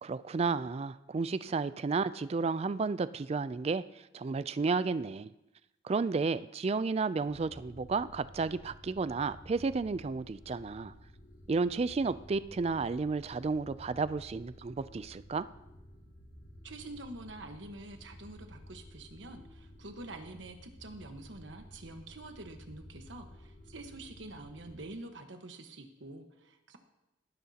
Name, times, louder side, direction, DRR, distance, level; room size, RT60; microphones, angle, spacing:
voice 1, 0.0-3.8 4.1-5.3 5.8-10.9 11.5-15.5, right 4 dB, 35° right, 15 dB, 0.3 m, -32 dB
sound 1, 7.2-24.9, equal, 80° left, 3.3 m, -53 dB
voice 2, 16.6-26.8, right 2 dB, 75° right, 5 dB, 1.3 m, -47 dB
18.0 x 10.0 x 2.9 m, 0.94 s
head